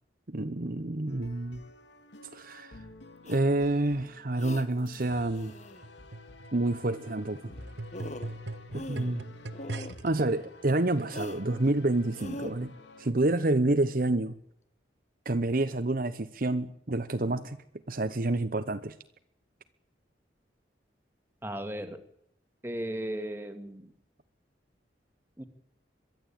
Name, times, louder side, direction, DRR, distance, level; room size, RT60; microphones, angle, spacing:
voice 1, 0.3-1.6 2.3-2.8 3.2-5.5 6.5-7.5 8.7-9.3 10.0-12.7 13.0-14.3 15.2-17.6 17.9-18.9, right 2 dB, 50° right, 10 dB, 1.0 m, -28 dB
sound 1, 1.1-13.1, left 2 dB, 80° left, 2.8 m, -51 dB
sound 2, 3.3-3.4 4.4-4.7 5.3-5.9 7.5-7.6 7.9-8.4 8.7-9.2 9.5-10.0 11.1-11.4 12.1-12.5, left 1 dB, 40° left, 1.6 m, -41 dB
sound 3, 5.8-10.2 11.0-11.1, right 2 dB, 80° right, 1.2 m, -41 dB
voice 2, 21.4-22.0 22.6-23.9 25.4-25.5, right 1 dB, 15° right, 7 dB, 2.1 m, -36 dB
23.0 x 13.5 x 8.8 m, 0.75 s
head